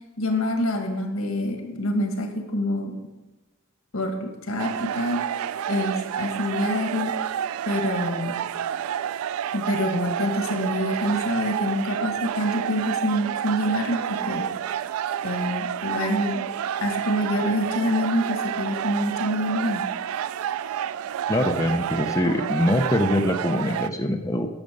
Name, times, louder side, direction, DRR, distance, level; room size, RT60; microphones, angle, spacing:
voice 1, 0.2-3.0 3.9-7.4 7.7-8.4 9.5-14.5 15.2-16.4 16.8-19.9, left 1 dB, 80° left, 4 dB, 1.6 m, -26 dB
sound 1, 4.6-23.9, right 9 dB, 85° right, 0.3 m, -29 dB
voice 2, 21.3-24.5, left 1 dB, 15° left, 3 dB, 0.6 m, -23 dB
10.5 x 6.6 x 5.2 m, 1.1 s
head